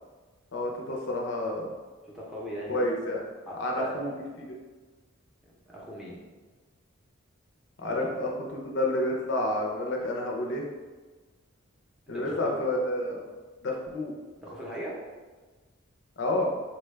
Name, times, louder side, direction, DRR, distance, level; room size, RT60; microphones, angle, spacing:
voice 1, 0.5-1.7 2.7-3.2 3.5-4.1 4.4-4.5 7.8-10.6 12.1-13.2 13.6-14.1 16.2-16.6, left 1 dB, 55° left, 0 dB, 0.5 m, -29 dB
voice 2, 2.0-2.8 3.5-4.0 5.4-6.2 7.9-8.0 12.1-12.6 14.4-15.0, equal, ahead, -6 dB, 0.6 m, -39 dB
4.1 x 2.2 x 3.2 m, 1.3 s
head